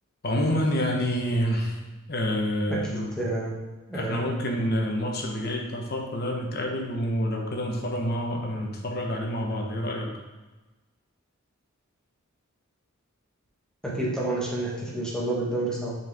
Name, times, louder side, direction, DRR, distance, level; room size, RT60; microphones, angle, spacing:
voice 1, 0.2-1.8 2.1-3.1 3.9-10.1, equal, 50° left, 1 dB, 1.0 m, -28 dB
voice 2, 2.7-3.6 3.9-4.2 13.8-16.0, right 2 dB, 5° left, -5 dB, 1.3 m, -29 dB
6.3 x 4.5 x 3.5 m, 1.2 s
head